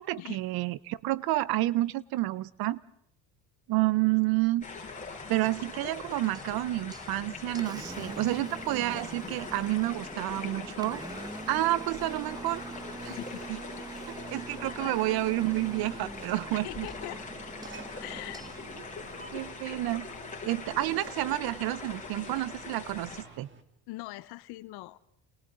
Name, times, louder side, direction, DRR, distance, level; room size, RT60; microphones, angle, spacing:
voice 1, 0.0-2.8 3.7-4.6 5.3-11.0 11.5-12.6 13.0-13.1 13.5-13.6 14.1-16.9 19.3-20.1 20.4-23.5, right 17 dB, 65° right, 19 dB, 0.8 m, -29 dB
sound 1, 4.6-23.2, left 4 dB, 20° left, 7.2 m, -42 dB
Engine, 5.5-19.5, right 2 dB, 10° right, 1.1 m, -45 dB
sound 2, 13.0-23.6, right 3 dB, 30° right, 2.9 m, -51 dB
voice 2, 13.1-13.4 14.8-15.0 16.5-17.2 18.0-18.4 23.9-25.0, left 19 dB, 75° left, 14 dB, 1.1 m, -41 dB
29.0 x 29.0 x 3.8 m, 0.68 s
cardioid pair, 115°, 39 cm